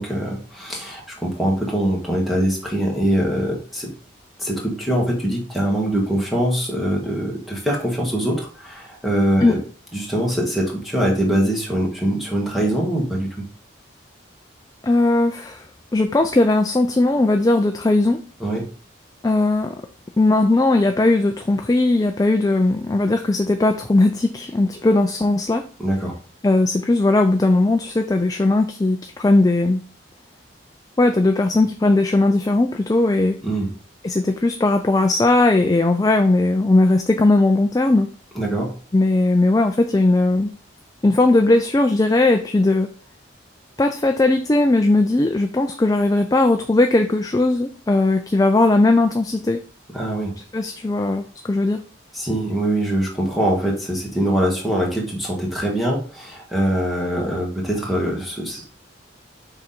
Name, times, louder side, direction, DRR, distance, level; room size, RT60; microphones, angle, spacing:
voice 1, 0.0-3.9 4.4-9.6 9.9-13.3 18.4-18.7 25.8-26.1 33.4-33.7 38.3-38.7 49.9-50.3 52.1-58.6, right 1 dB, ahead, -3 dB, 1.6 m, -23 dB
voice 2, 14.8-15.6 15.9-18.2 19.2-19.8 20.2-25.6 26.4-29.8 31.0-33.4 34.0-38.1 38.9-40.5 41.0-42.9 43.8-49.6 50.5-51.8, left 2 dB, 20° left, 5 dB, 0.3 m, -18 dB
6.0 x 4.0 x 4.2 m, 0.40 s
head